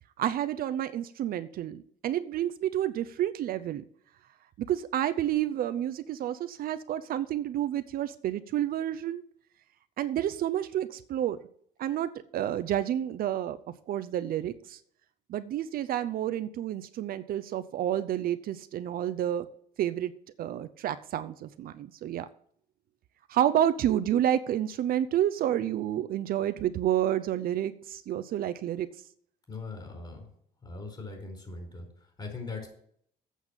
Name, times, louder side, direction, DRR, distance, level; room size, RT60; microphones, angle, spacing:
voice 1, 0.2-3.8 4.6-9.2 10.0-11.4 11.8-13.6 13.9-14.8 15.3-19.5 19.8-22.3 23.3-28.9, right 11 dB, 60° right, 12 dB, 0.6 m, -29 dB
voice 2, 29.5-30.3 30.6-32.7, left 3 dB, 25° left, 3 dB, 4.7 m, -40 dB
8.3 x 7.0 x 7.4 m, 0.63 s
cardioid pair, 110°, 17 cm